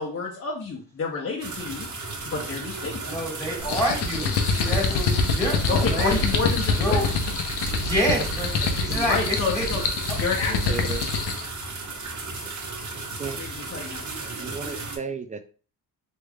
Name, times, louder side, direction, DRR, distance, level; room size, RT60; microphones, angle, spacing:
voice 1, 0.0-1.9 2.3-3.0 5.7-7.0 9.0-9.8 10.2-10.7 13.4-14.0, left 4 dB, 35° left, -2 dB, 0.7 m, -29 dB
sound 1, 1.4-15.0, right 3 dB, 45° right, 1.1 m, -35 dB
voice 2, 3.0-6.2 6.8-7.3 7.7-8.5 8.8-9.7 10.1-10.2, equal, 5° left, -1 dB, 1.7 m, -28 dB
sound 2, 3.6-11.5, left 4 dB, 75° left, 0.7 m, -25 dB
voice 3, 10.5-11.1 13.2-13.4 14.4-15.5, right 5 dB, 20° right, 9 dB, 0.3 m, -34 dB
3.3 x 3.1 x 2.3 m, 0.38 s
cardioid pair, 85°, 41 cm